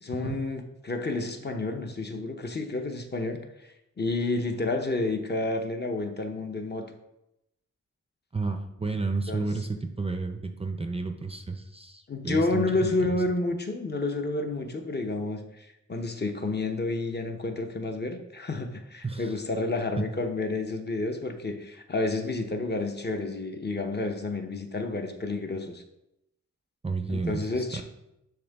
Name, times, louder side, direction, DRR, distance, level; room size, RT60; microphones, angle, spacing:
voice 1, 0.0-6.9 9.3-9.5 12.1-25.8 27.1-27.8, left 2 dB, 35° left, 4 dB, 0.7 m, -30 dB
voice 2, 8.3-13.2 19.0-19.3 26.8-27.8, right 3 dB, 20° right, 5 dB, 0.5 m, -32 dB
10.5 x 3.5 x 3.4 m, 0.86 s
wide cardioid pair, 135°, 29 cm